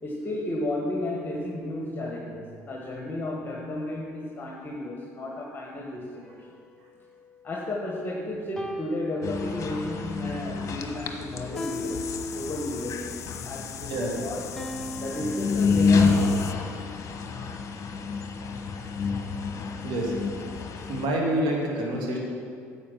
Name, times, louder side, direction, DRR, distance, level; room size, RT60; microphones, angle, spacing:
voice 1, 0.0-6.5 7.4-13.2 13.4-14.4 15.0-16.7, left 1 dB, 25° left, -1 dB, 1.7 m, -33 dB
sound 1, 6.2-8.0 8.6-10.0 11.6-13.0 14.6-16.0, left 1 dB, 5° left, 1.0 m, -39 dB
sound 2, 9.2-21.1, left 4 dB, 40° left, 1.2 m, -29 dB
sound 3, 11.5-16.5, left 10 dB, 90° left, 0.4 m, -41 dB
voice 2, 19.8-20.1 20.9-22.2, right 1 dB, 65° right, -1 dB, 2.4 m, -27 dB
10.0 x 8.1 x 5.9 m, 2.3 s
hypercardioid pair, 60°, 8 cm